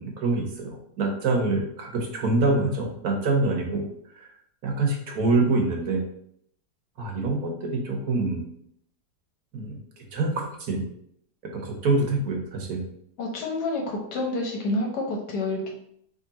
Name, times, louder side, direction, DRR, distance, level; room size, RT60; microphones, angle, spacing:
voice 1, 0.0-3.8 4.2-4.3 4.6-6.0 7.0-8.4 9.5-9.8 10.1-10.8 11.5-12.8, right 3 dB, 70° right, 1 dB, 1.4 m, -25 dB
voice 2, 13.2-15.7, left 2 dB, 85° left, 1 dB, 1.6 m, -28 dB
3.6 x 3.2 x 4.2 m, 0.69 s
omnidirectional pair, 1.7 m